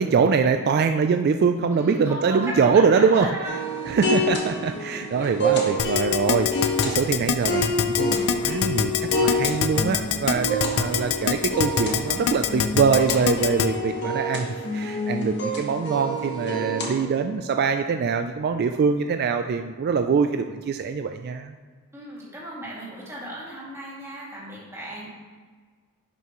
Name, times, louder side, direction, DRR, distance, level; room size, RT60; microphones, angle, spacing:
voice 1, 0.0-3.3 3.9-8.9 9.2-14.5 14.7-21.5, right 5 dB, 50° right, 6 dB, 0.3 m, -23 dB
voice 2, 1.7-4.0 5.2-5.3 21.9-25.1, right 1 dB, 15° right, -7 dB, 2.2 m, -36 dB
sound 1, 3.4-17.0, left 1 dB, 55° left, 1.4 m, -27 dB
Keyboard (musical), 5.8-13.7, left 8 dB, 80° left, 0.5 m, -23 dB
10.5 x 5.7 x 3.0 m, 1.5 s
head